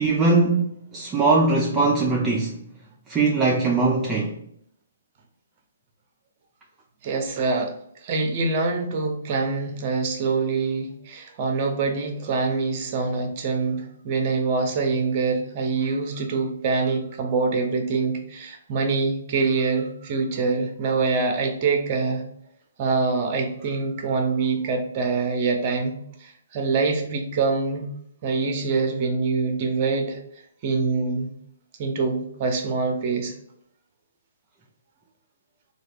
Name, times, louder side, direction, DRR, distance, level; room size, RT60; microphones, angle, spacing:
voice 1, 0.0-2.6 3.1-4.4, right 3 dB, 15° right, 0.4 m, -21 dB
voice 2, 7.0-7.8 8.0-22.2 22.8-27.9 28.2-30.2 30.6-31.3 31.8-33.3, right 4 dB, 35° right, 0.8 m, -25 dB
3.8 x 2.4 x 3.4 m
hypercardioid pair, 155°, 0 cm